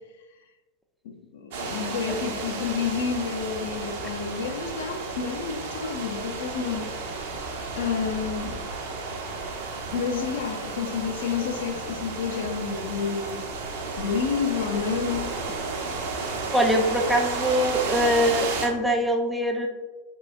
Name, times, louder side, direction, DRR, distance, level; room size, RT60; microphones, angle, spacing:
voice 1, 1.0-6.9 7.7-8.6 9.9-13.4 14.0-15.3, left 6 dB, 55° left, 5 dB, 0.4 m, -29 dB
sound 1, 1.5-18.7, right 3 dB, 55° right, 0.7 m, -33 dB
voice 2, 16.5-19.7, equal, 5° right, 3 dB, 0.4 m, -23 dB
4.6 x 3.8 x 2.3 m, 1.2 s
figure-of-eight pair, 90°, 0 cm